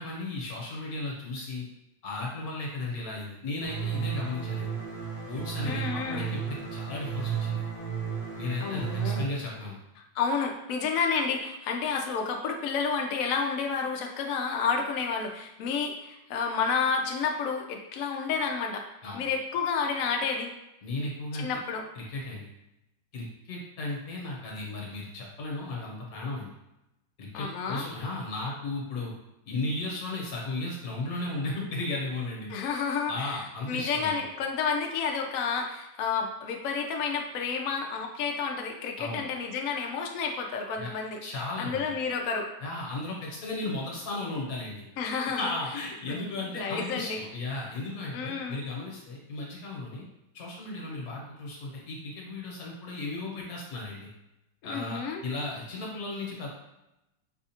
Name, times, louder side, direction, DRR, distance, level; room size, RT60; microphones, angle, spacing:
voice 1, 0.0-1.6 2.0-4.7 5.3-7.6 8.4-9.8 19.0-19.2 20.8-21.6 21.9-22.5 23.1-26.5 27.2-29.1 29.4-32.5 33.1-34.1 39.0-39.2 40.8-40.9 41.2-41.8 42.6-44.9 45.4-50.0 50.3-54.1 54.6-56.5, left 2 dB, 55° left, -2 dB, 1.3 m, -35 dB
sound 1, 3.6-9.2, right 8 dB, 75° right, 2.1 m, -33 dB
voice 2, 5.6-6.3 8.6-9.3 10.2-18.8 19.1-20.5 21.3-21.8 27.3-27.8 32.5-41.2 41.6-42.5 45.0-45.4 46.1-47.2 48.1-48.6 54.6-55.2, left 5 dB, 90° left, 2 dB, 0.7 m, -30 dB
4.9 x 2.4 x 2.8 m, 0.92 s
omnidirectional pair, 2.0 m